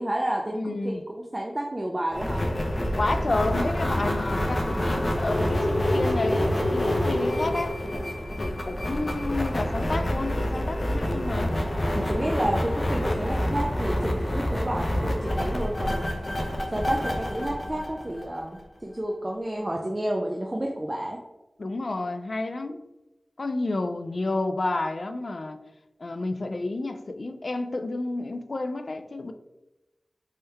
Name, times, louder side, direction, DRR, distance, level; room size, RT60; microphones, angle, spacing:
voice 1, 0.0-2.4 11.1-11.6 12.0-16.1 16.7-21.2, right 1 dB, 25° right, 0 dB, 0.4 m, -30 dB
voice 2, 0.5-1.0 3.0-7.8 8.4-11.6 21.6-22.8 23.4-25.6 26.0-29.3, left 2 dB, 60° left, 8 dB, 0.3 m, -30 dB
sound 1, 2.1-18.6, left 1 dB, 45° left, 0.8 m, -27 dB
4.1 x 3.7 x 3.3 m, 1.0 s
wide cardioid pair, 85°, 0 cm